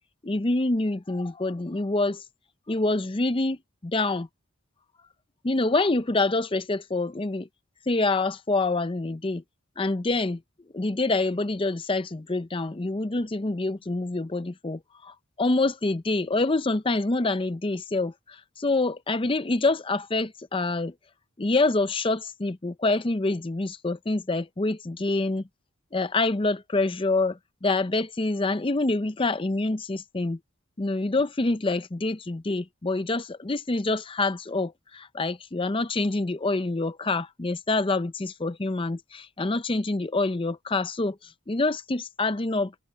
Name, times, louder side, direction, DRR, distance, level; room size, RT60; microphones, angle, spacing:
voice 1, 0.2-2.2 2.7-4.3 5.4-7.5 7.9-9.4 9.8-10.4 10.7-21.0 21.4-25.5 25.9-30.4 30.8-42.7, left 2 dB, 25° left, 0.6 m, -26 dB
head